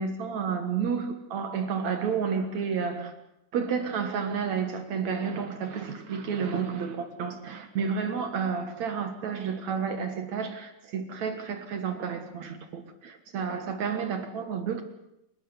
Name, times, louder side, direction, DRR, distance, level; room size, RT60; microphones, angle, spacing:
voice 1, 0.0-3.1 3.5-14.8, right 6 dB, 60° right, 2.7 m, -31 dB
28.0 x 12.5 x 9.9 m
omnidirectional pair, 3.7 m